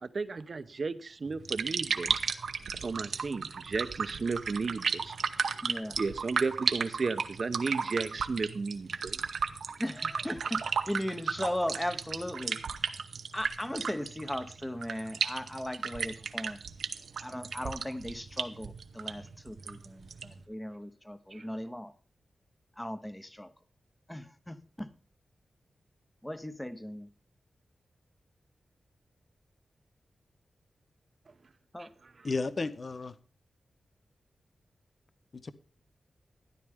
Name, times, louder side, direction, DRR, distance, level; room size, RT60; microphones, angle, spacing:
voice 1, 0.0-2.4 2.8-5.2 5.7-9.2 21.3-21.5 31.8-32.3, right 4 dB, 45° right, 0.7 m, -34 dB
sound 1, 1.3-20.4, right 6 dB, 80° right, 0.8 m, -35 dB
voice 2, 5.6-6.0 9.8-12.6 13.3-16.6 17.2-21.9 22.8-23.5 24.1-24.9 26.2-27.1 31.7-31.9, left 1 dB, 10° left, 0.8 m, -37 dB
voice 3, 32.2-33.2 35.3-35.5, left 3 dB, 40° left, 0.6 m, -33 dB
13.0 x 11.0 x 3.5 m
wide cardioid pair, 140°, 0 cm